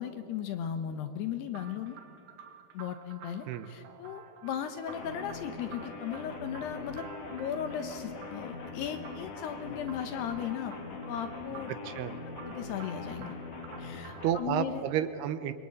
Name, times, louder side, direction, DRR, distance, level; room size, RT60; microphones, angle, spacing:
voice 1, 0.0-2.0 2.7-11.7 12.4-13.4 13.8-14.9, left 9 dB, 70° left, 8 dB, 2.8 m, -37 dB
sound 1, 1.5-14.5, right 7 dB, 60° right, 3.6 m, -51 dB
sound 2, 4.9-14.3, left 3 dB, 40° left, 2.7 m, -42 dB
voice 2, 11.7-12.2 14.2-15.5, right 10 dB, 75° right, 11 dB, 2.5 m, -31 dB
26.5 x 23.5 x 8.8 m, 2.5 s
omnidirectional pair, 5.5 m